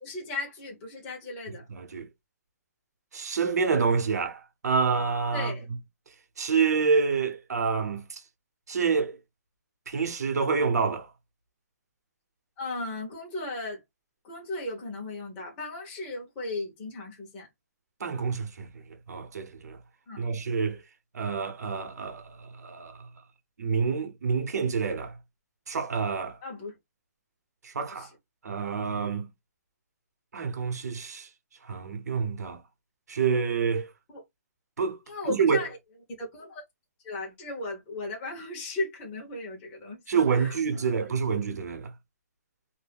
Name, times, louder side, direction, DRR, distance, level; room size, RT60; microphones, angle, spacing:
voice 1, 0.0-1.6 5.3-5.7 12.6-13.8 14.2-17.5 20.1-20.3 26.4-26.7 27.9-28.1 34.1-34.2 35.1-35.7 36.2-36.6 37.0-40.0 40.3-40.9, left 2 dB, 20° left, 1.0 m, -36 dB
voice 2, 1.7-2.1 3.1-5.5 6.4-8.2 8.7-9.2 9.9-11.1 18.0-19.8 20.2-20.8 21.1-23.1 23.6-25.1 25.7-26.4 27.6-28.1 28.4-29.3 30.3-31.3 31.6-32.6 33.1-33.9 34.8-35.0 35.2-35.6 40.1-41.9, right 5 dB, 75° right, 0.9 m, -27 dB
2.6 x 2.1 x 3.4 m
hypercardioid pair, 170°, 9 cm